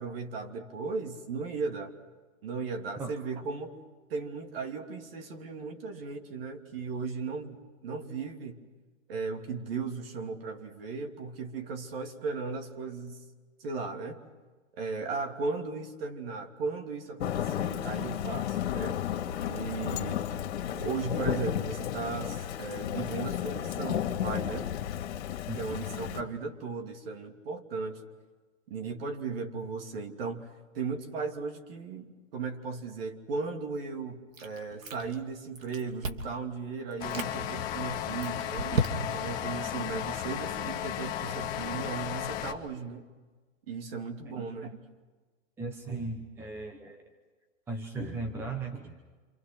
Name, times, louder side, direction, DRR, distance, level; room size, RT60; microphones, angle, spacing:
voice 1, 0.0-1.9 2.4-3.7 4.1-8.6 9.1-13.2 13.6-14.2 14.8-19.0 19.5-20.3 20.7-24.7 25.5-28.0 28.7-38.8 39.1-43.0 43.7-44.8, right 4 dB, 45° right, 5 dB, 2.9 m, -36 dB
Thunder / Rain, 17.2-26.2, left 10 dB, 55° left, 2.5 m, -33 dB
voice 2, 25.5-25.8 45.6-47.0 47.7-49.0, right 3 dB, 5° right, 4 dB, 1.0 m, -37 dB
Chewing mastication, 34.3-35.3 35.5-36.4 36.9-37.3 37.9-39.3, right 2 dB, 85° right, 3.0 m, -33 dB
sound 1, 37.0-42.5, left 11 dB, 20° left, 1.6 m, -34 dB
27.5 x 27.0 x 6.2 m, 1.3 s
hypercardioid pair, 160°, 39 cm